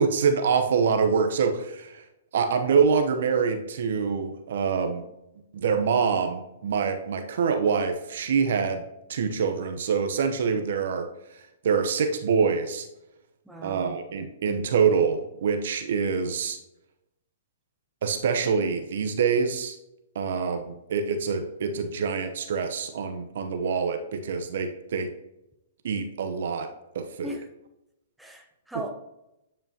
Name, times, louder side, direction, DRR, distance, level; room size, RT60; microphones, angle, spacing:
voice 1, 0.0-2.0 2.3-5.0 5.5-8.8 9.1-12.9 13.6-16.6 18.0-19.8 20.1-25.1 25.8-26.7 26.9-27.4, right 6 dB, 65° right, 7 dB, 0.8 m, -25 dB
voice 2, 13.4-14.0 27.2-27.5 28.2-28.9, right 1 dB, 5° right, 2 dB, 0.8 m, -38 dB
9.3 x 5.4 x 2.8 m, 0.89 s
hypercardioid pair, 125°, 0 cm